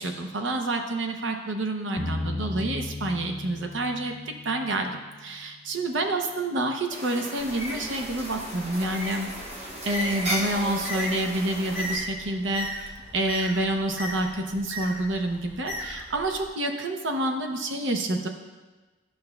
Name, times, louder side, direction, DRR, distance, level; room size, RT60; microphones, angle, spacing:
voice 1, 0.0-4.9 5.2-9.3 9.6-12.7 13.1-18.3, right 1 dB, 65° right, 4 dB, 0.7 m, -28 dB
sound 1, 2.0-5.1, left 2 dB, 40° left, 0.5 m, -35 dB
sound 2, 6.9-12.0, right 1 dB, 30° right, 0.9 m, -35 dB
Bird, 7.4-16.5, left 1 dB, 10° right, 1.0 m, -37 dB
12.5 x 5.5 x 2.3 m, 1.3 s
head